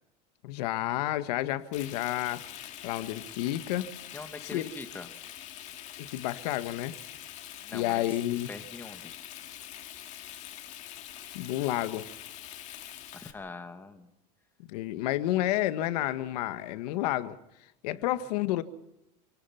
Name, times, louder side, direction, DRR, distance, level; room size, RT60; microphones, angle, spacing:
voice 1, 0.4-2.4 2.8-3.9 4.5-4.7 6.0-7.0 7.7-8.5 11.3-12.1 14.7-17.4 17.8-18.6, left 14 dB, 75° left, 11 dB, 1.6 m, -30 dB
Frying (food), 1.7-13.3, left 12 dB, 35° left, 2.0 m, -44 dB
voice 2, 4.1-5.1 7.6-8.1 8.5-9.1 13.1-14.1, left 3 dB, 10° left, 8 dB, 1.6 m, -43 dB
27.5 x 19.0 x 5.8 m, 0.85 s
cardioid pair, 170°, 21 cm